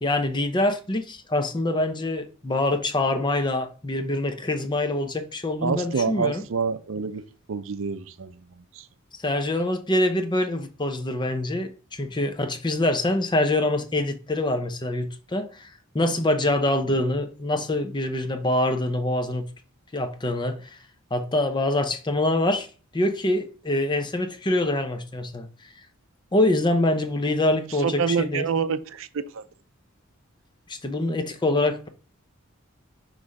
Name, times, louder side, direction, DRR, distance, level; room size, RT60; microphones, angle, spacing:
voice 1, 0.0-6.4 9.2-19.5 19.9-20.8 21.1-22.7 22.9-25.5 26.3-28.4 30.7-31.9, left 1 dB, 20° left, 0.6 m, -25 dB
voice 2, 5.6-7.2 7.5-8.9 27.8-29.4, right 5 dB, 65° right, 0.5 m, -27 dB
6.0 x 3.2 x 5.2 m
head